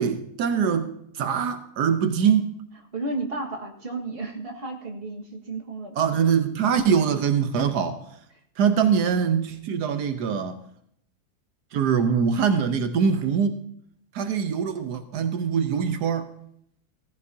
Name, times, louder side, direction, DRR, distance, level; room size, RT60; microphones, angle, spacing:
voice 1, 0.0-2.5 6.0-8.0 8.6-10.6 11.7-13.6 14.1-16.4, right 7 dB, 90° right, 1.5 m, -23 dB
voice 2, 2.9-6.0 8.7-8.8, right 2 dB, 35° right, 2.0 m, -33 dB
17.5 x 15.0 x 2.8 m
omnidirectional pair, 1.7 m